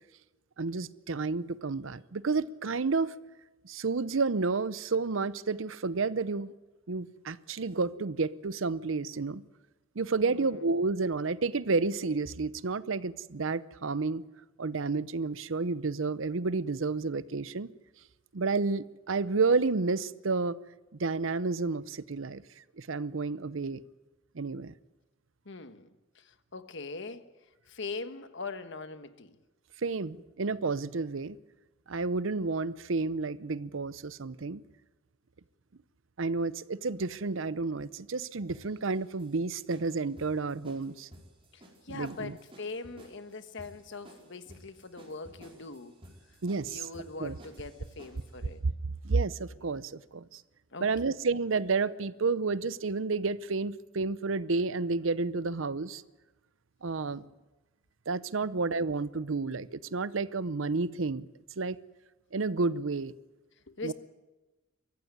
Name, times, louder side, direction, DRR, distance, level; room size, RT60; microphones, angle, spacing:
voice 1, 0.6-3.1 3.6-6.5 6.9-9.4 10.0-14.2 14.6-17.7 18.3-20.6 21.0-22.4 22.8-23.8 24.3-24.7 29.8-31.4 31.9-34.6 36.2-41.1 41.9-42.4 46.4-46.8 47.2-47.3 48.6-48.7 49.0-50.4 50.8-56.0 56.8-57.3 58.1-61.3 61.6-61.8 62.3-63.1 63.8-63.9, right 4 dB, 70° right, 0.7 m, -30 dB
voice 2, 10.3-10.8 25.4-29.4 41.5-46.0 46.3-46.4 46.6-48.6 49.5-49.6 50.7-51.1 58.4-58.5 63.7-63.9, left 3 dB, 65° left, 1.3 m, -42 dB
sound 1, 38.5-48.4, right 1 dB, 30° right, 4.7 m, -54 dB
23.5 x 14.5 x 9.6 m
head